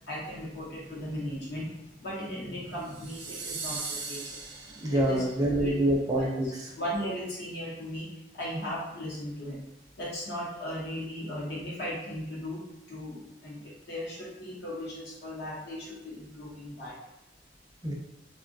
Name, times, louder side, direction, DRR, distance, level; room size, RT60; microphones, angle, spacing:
voice 1, 0.1-4.4 4.7-5.2 5.6-5.7 6.2-8.1 8.3-9.6 10.0-12.6 12.9-16.9, equal, 65° left, -6 dB, 0.9 m, -37 dB
sound 1, 2.8-5.3, right 4 dB, 85° right, 0.7 m, -39 dB
voice 2, 4.8-6.7 17.8-17.9, right 1 dB, 20° right, -3 dB, 0.5 m, -26 dB
2.6 x 2.4 x 2.6 m, 0.92 s
head